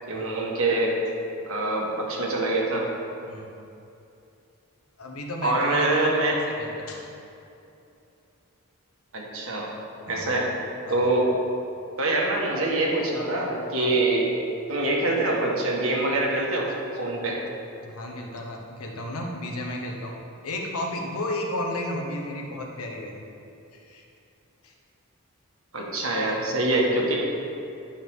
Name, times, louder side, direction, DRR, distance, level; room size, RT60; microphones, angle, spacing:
voice 1, 0.1-1.0 1.4-2.9 5.4-6.4 9.1-9.7 10.1-10.5 10.9-11.3 12.0-14.4 14.7-17.4 25.7-27.1, right 2 dB, 70° right, -2 dB, 1.6 m, -24 dB
voice 2, 5.0-5.9 6.2-7.1 10.1-10.3 10.8-11.1 13.7-13.9 17.2-17.4 17.8-20.2 20.4-23.2 23.7-24.0 24.6-24.7, left 1 dB, 85° left, 1 dB, 1.1 m, -33 dB
11.5 x 5.8 x 3.7 m, 2.7 s
head